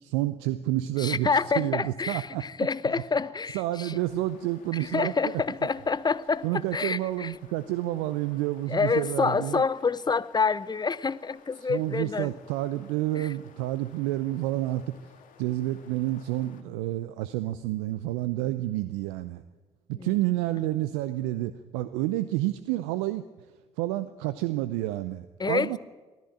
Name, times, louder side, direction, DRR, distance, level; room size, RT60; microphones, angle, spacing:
voice 1, 0.0-2.4 3.5-5.1 6.4-9.6 11.7-15.0 15.4-19.4 19.9-23.3 23.8-25.8, right 15 dB, 75° right, 0.6 m, -29 dB
voice 2, 1.0-4.0 4.8-7.3 8.7-12.3 13.2-13.3 20.0-20.1 25.4-25.8, left 5 dB, 30° left, 0.8 m, -27 dB
sound 1, 3.8-16.6, left 7 dB, 65° left, 2.3 m, -56 dB
22.5 x 14.0 x 9.1 m
hypercardioid pair, 45°, 15 cm